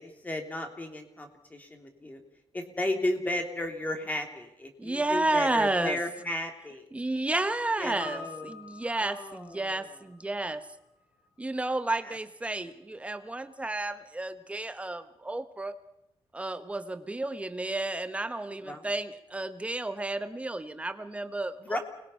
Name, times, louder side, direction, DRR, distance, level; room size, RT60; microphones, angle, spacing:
voice 1, 0.0-2.2 2.5-6.9 7.8-8.6 8.9-9.9 12.0-12.2 18.6-18.9 21.6-21.8, left 1 dB, 15° left, 4 dB, 3.1 m, -34 dB
voice 2, 4.8-6.0 6.9-10.6 11.4-15.8 16.3-21.8, right 2 dB, 15° right, 10 dB, 1.1 m, -31 dB
Piano, 8.0-12.5 12.8-12.9, left 4 dB, 75° left, 7.7 m, -48 dB
29.5 x 21.0 x 5.6 m, 0.82 s
wide cardioid pair, 155°, 10 cm